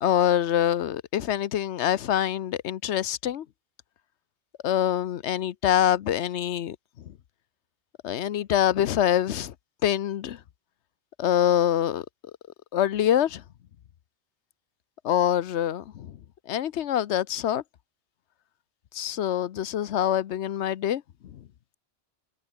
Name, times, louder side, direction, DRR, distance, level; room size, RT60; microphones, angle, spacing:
voice 1, 0.0-3.4 4.6-6.8 8.0-9.5 9.8-10.4 11.2-12.0 12.7-13.4 15.0-16.1 16.5-17.6 18.9-21.0, left 10 dB, 75° left, 1.0 m, -25 dB
omnidirectional pair, 1.2 m